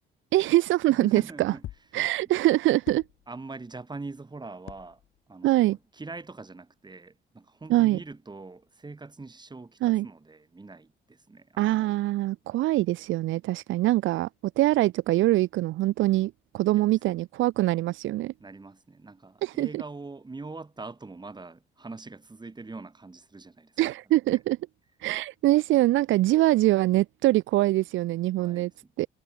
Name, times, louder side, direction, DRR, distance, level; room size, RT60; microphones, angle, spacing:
voice 1, 0.3-1.5 1.9-3.0 5.4-5.8 7.7-8.0 9.8-10.1 11.6-14.3 14.6-18.3 19.4-19.8 23.8-24.6 25.0-28.7 29.0-29.1, right 16 dB, 80° right, 0.5 m, -23 dB
voice 2, 0.9-1.7 3.3-5.0 5.3-11.9 16.8-16.9 18.4-23.8 28.4-28.9, right 3 dB, 20° right, 4.7 m, -43 dB
sound 1, 1.6-1.9 2.9-3.4 4.6-5.3 5.8-5.9, left 13 dB, 80° left, 1.4 m, -45 dB
cardioid pair, 90°, 20 cm